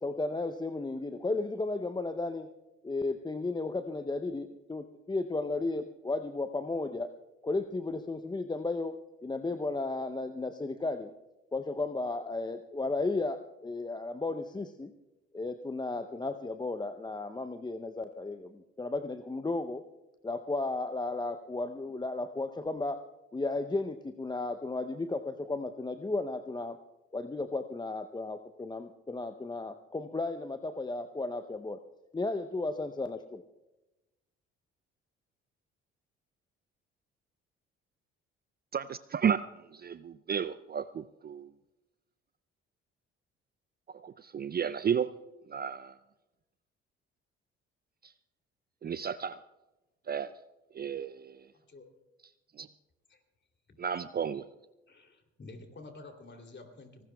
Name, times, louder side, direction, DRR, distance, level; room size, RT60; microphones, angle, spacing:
voice 1, 0.0-2.5 2.8-7.1 7.4-8.9 9.2-11.1 11.5-14.9 15.3-19.8 20.2-23.0 23.3-26.8 27.1-31.8 32.1-33.4, left 3 dB, 15° left, 8 dB, 0.7 m, -34 dB
voice 2, 38.7-39.4 39.7-41.5 43.9-45.1 45.5-46.0 48.0-48.1 48.8-49.4 50.1-50.3 50.7-51.5 52.6-52.7 53.8-54.5, right 7 dB, 30° right, 14 dB, 0.5 m, -33 dB
voice 3, 51.5-51.9 53.1-53.2 53.7-53.8 54.9-57.0, left 2 dB, 35° left, 4 dB, 3.0 m, -50 dB
24.5 x 19.0 x 2.3 m, 1.0 s
hypercardioid pair, 50°, 30 cm